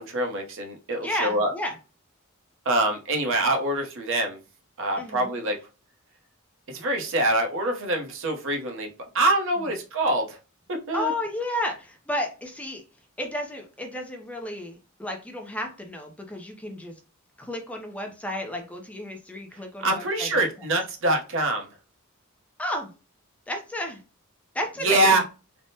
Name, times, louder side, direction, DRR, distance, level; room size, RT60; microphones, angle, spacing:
voice 1, 0.0-1.5 2.7-4.4 4.8-5.6 6.7-8.9 9.1-10.4 10.7-11.1 19.8-21.7 24.8-25.2, right 1 dB, 65° right, 2 dB, 0.7 m, -24 dB
voice 2, 1.0-1.8 5.0-5.3 10.9-12.8 13.2-16.9 17.4-20.4 22.6-22.9 23.5-24.0 24.5-25.1, left 1 dB, 5° left, 3 dB, 0.4 m, -32 dB
3.4 x 2.0 x 2.7 m, 0.32 s
head